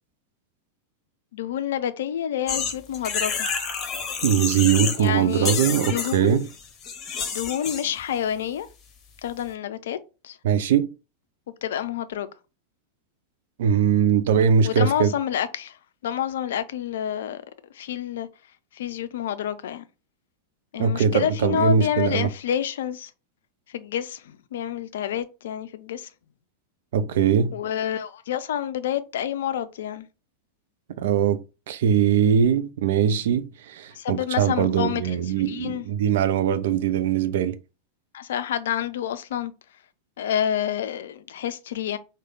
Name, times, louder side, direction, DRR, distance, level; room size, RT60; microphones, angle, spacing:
voice 1, 1.3-3.5 5.0-6.4 7.3-8.7 9.2-10.0 10.2-10.4 11.6-12.3 14.6-15.8 16.0-17.4 17.7-18.3 18.7-19.8 20.7-23.1 23.7-26.1 27.5-30.1 33.9-35.9 38.1-39.5 40.2-42.0, left 10 dB, 60° left, 0.4 m, -28 dB
sound 1, 2.5-5.1 5.3-7.9, left 5 dB, 25° left, 0.9 m, -29 dB
voice 2, 4.2-6.5 10.4-10.9 13.6-15.1 20.8-22.3 26.9-27.6 31.0-37.6, right 8 dB, 55° right, 0.4 m, -21 dB
4.8 x 2.1 x 3.9 m
figure-of-eight pair, 90°, 0 cm